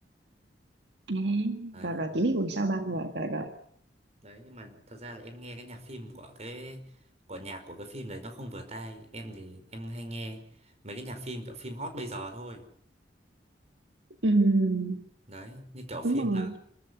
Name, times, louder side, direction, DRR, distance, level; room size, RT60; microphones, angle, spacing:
voice 1, 1.1-3.5 14.2-15.0 16.0-16.5, right 2 dB, 70° right, 6 dB, 1.8 m, -27 dB
voice 2, 1.7-2.2 4.2-6.8 7.3-12.6 15.3-16.5, right 1 dB, 40° right, 6 dB, 5.1 m, -41 dB
27.5 x 14.0 x 8.2 m, 0.67 s
head